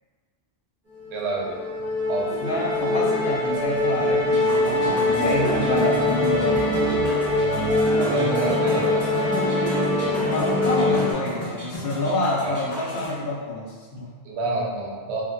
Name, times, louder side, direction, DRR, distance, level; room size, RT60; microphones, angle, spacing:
Musical instrument, 1.0-11.1, left 2 dB, 30° right, 0.8 m, -23 dB
voice 1, 1.1-1.6 2.1-2.3 8.0-9.1 12.4-12.6 14.2-15.2, right 3 dB, 85° right, -3 dB, 0.9 m, -28 dB
voice 2, 2.4-7.1 10.2-14.1, left 1 dB, 70° left, -4 dB, 0.8 m, -28 dB
sound 1, 4.3-13.2, left 1 dB, 40° left, 1.0 m, -36 dB
2.6 x 2.1 x 2.5 m, 1.5 s
omnidirectional pair, 1.1 m